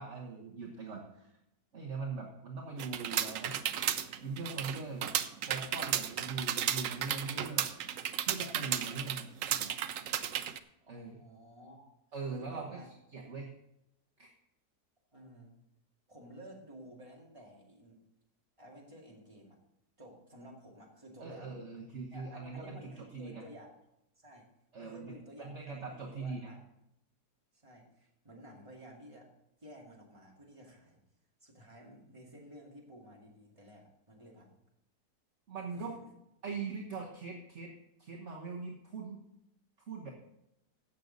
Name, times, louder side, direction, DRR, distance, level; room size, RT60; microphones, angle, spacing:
voice 1, 0.0-1.3 1.7-3.6 4.2-5.1 5.5-7.7 8.3-9.8 10.9-11.1 12.1-12.8 13.1-13.5 14.2-14.3 21.2-23.4 24.7-26.5 35.5-36.0 36.4-37.7 38.0-39.2 39.9-40.1, right 4 dB, 50° right, -1 dB, 1.4 m, -41 dB
sound 1, 2.8-10.6, right 10 dB, 65° right, 0.9 m, -34 dB
voice 2, 10.8-11.9 12.4-12.9 13.1-13.3 15.1-15.6 16.1-18.0 18.6-19.6 20.0-21.5 22.1-23.8 24.2-24.5 24.8-26.6 27.5-29.3 29.6-31.0 31.4-34.5 35.7-36.1, equal, 20° right, -2 dB, 2.3 m, -53 dB
16.0 x 6.7 x 4.0 m, 0.85 s
omnidirectional pair, 1.7 m